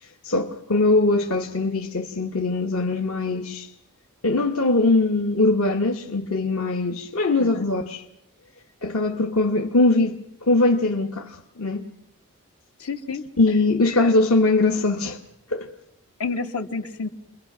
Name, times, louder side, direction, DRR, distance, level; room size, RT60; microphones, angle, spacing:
voice 1, 0.0-3.7 4.2-8.0 8.8-11.9 13.4-15.2 15.5-15.7, left 2 dB, 65° left, 1.1 m, -21 dB
voice 2, 12.8-13.2 13.9-14.2 16.2-17.1, left 4 dB, 80° left, 1.9 m, -30 dB
29.5 x 22.5 x 6.0 m
head